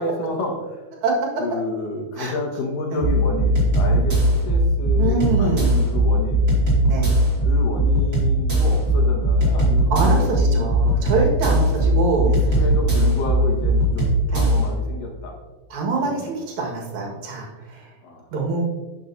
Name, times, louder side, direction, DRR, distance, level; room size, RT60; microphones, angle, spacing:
voice 1, 0.0-0.8 1.4-6.4 7.4-10.7 11.5-15.3 16.0-16.4 18.0-18.3, left 2 dB, 80° left, 0 dB, 3.1 m, -30 dB
voice 2, 1.0-1.4 2.2-2.3 2.9-3.1 4.9-5.8 6.9-7.1 9.9-12.4 14.3-14.5 15.7-17.9 18.3-18.6, right 3 dB, 65° right, -1 dB, 2.9 m, -25 dB
sound 1, 3.0-14.7, right 1 dB, 25° right, 2.3 m, -19 dB
11.0 x 7.1 x 2.7 m, 1.2 s
omnidirectional pair, 3.7 m